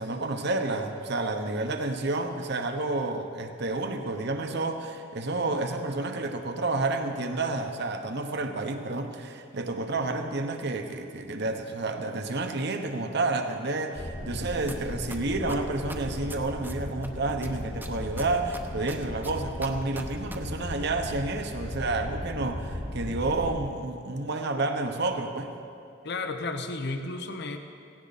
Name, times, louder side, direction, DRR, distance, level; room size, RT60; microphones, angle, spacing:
voice 1, 0.0-25.5, right 2 dB, 60° right, 6 dB, 1.1 m, -30 dB
sound 1, 14.0-23.7, left 1 dB, 25° left, 0.6 m, -37 dB
sound 2, 14.7-14.8 15.1-17.1 17.4-20.4 20.6-20.7, right 2 dB, 10° right, 0.9 m, -40 dB
voice 2, 26.0-27.6, left 3 dB, 60° left, 6 dB, 0.9 m, -33 dB
17.0 x 16.5 x 4.2 m, 2.5 s
head